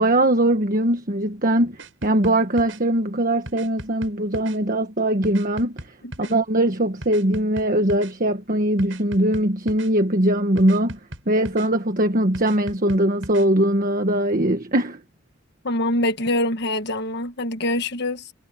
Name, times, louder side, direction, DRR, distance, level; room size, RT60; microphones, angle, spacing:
voice 1, 0.0-5.8 6.2-11.0 11.3-15.0, right 1 dB, 45° right, 1.4 m, -21 dB
sound 1, 1.8-2.8 3.5-4.6 5.2-6.3 7.0-8.1 8.8-9.9 10.6-11.7 12.3-13.5, right 1 dB, 80° right, 7.3 m, -38 dB
voice 2, 15.6-18.3, left 1 dB, 60° left, 1.5 m, -24 dB
head